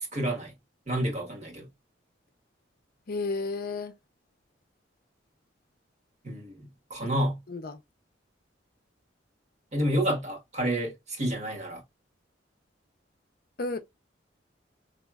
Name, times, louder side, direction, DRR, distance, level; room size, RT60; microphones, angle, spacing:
voice 1, 0.1-0.5 0.9-1.7 6.2-6.6 6.9-7.4 9.7-11.8, right 1 dB, 40° right, 1.4 m, -29 dB
voice 2, 3.1-3.9 7.5-7.8 13.6-13.8, left 3 dB, 50° left, 0.6 m, -32 dB
5.0 x 2.9 x 2.3 m
head